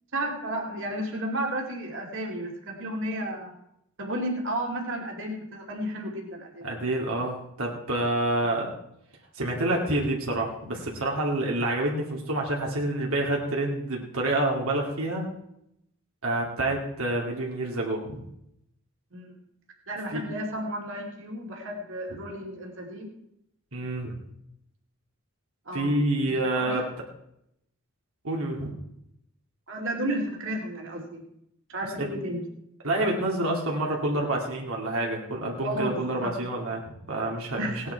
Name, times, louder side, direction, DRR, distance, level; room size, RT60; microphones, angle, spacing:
voice 1, 0.1-3.5 4.0-6.7 19.1-19.4 19.9-23.1 25.7-26.8 29.7-31.2 31.7-32.4 35.6-36.3 37.6-37.8, right 1 dB, 65° right, 0 dB, 2.6 m, -33 dB
voice 2, 6.6-8.7 9.3-15.3 16.2-18.3 20.1-20.3 22.1-22.2 23.7-24.2 25.7-26.9 28.2-28.7 32.0-32.1 32.8-37.7, right 1 dB, 85° right, -2 dB, 2.4 m, -28 dB
18.0 x 10.0 x 4.6 m, 0.78 s
head